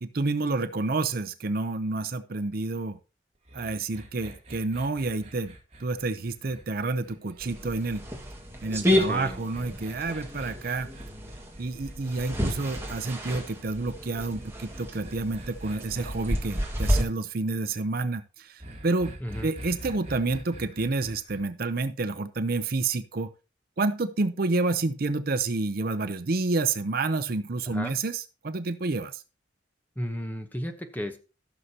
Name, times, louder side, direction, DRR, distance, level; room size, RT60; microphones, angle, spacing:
voice 1, 0.0-3.0 3.5-5.5 5.8-8.1 8.6-10.9 11.6-19.2 19.4-23.3 23.8-29.2, right 3 dB, 50° right, 0.6 m, -29 dB
sound 1, 3.5-7.9 8.8-12.9 14.3-17.0 18.6-21.4, right 1 dB, 35° right, 2.6 m, -45 dB
sound 2, 7.4-17.0, equal, 15° right, 1.8 m, -31 dB
voice 2, 9.0-9.4 19.2-19.5 27.7-27.9 30.0-31.2, equal, 10° left, 0.9 m, -34 dB
15.5 x 6.6 x 2.8 m
head